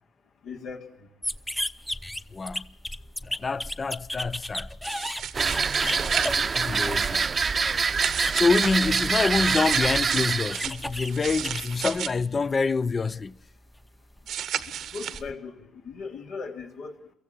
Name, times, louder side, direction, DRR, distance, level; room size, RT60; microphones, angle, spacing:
voice 1, 0.4-0.8 14.7-15.5 15.8-16.9, left 5 dB, 75° left, 3.4 m, -38 dB
sound 1, 1.2-12.6 12.9-15.3, equal, 5° left, 0.9 m, -36 dB
voice 2, 2.3-2.7 3.2-4.7 6.5-7.3 8.4-13.4, left 4 dB, 35° left, 0.7 m, -26 dB
sound 2, 4.8-6.3 7.9-12.1 14.3-15.2, right 9 dB, 75° right, 1.2 m, -34 dB
sound 3, 5.3-10.6, right 5 dB, 40° right, 0.8 m, -25 dB
23.5 x 15.0 x 8.6 m
supercardioid pair, 70°, 0 cm